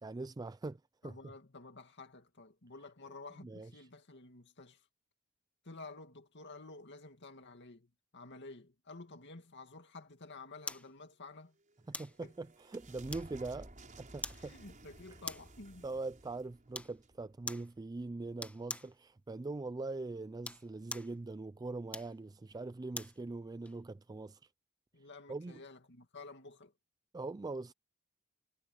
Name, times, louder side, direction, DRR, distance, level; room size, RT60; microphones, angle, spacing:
voice 1, 0.0-1.3 3.4-3.9 11.9-13.7 14.0-14.6 15.8-24.4 25.3-25.6 27.1-27.7, right 3 dB, 20° right, 0.3 m, -42 dB
voice 2, 1.0-4.8 5.6-11.5 12.2-12.3 14.3-15.8 24.9-26.7, left 3 dB, 55° left, 2.3 m, -51 dB
sound 1, 10.7-10.9 11.9-12.2 13.1-13.5 14.2-14.5 15.2-15.6 16.7-17.0 17.5-17.7 18.4-18.9 20.3-21.2 21.9-23.2 23.7-23.8, left 2 dB, 5° left, 1.3 m, -43 dB
sound 2, 11.6-18.0, right 1 dB, 40° right, 5.6 m, -55 dB
head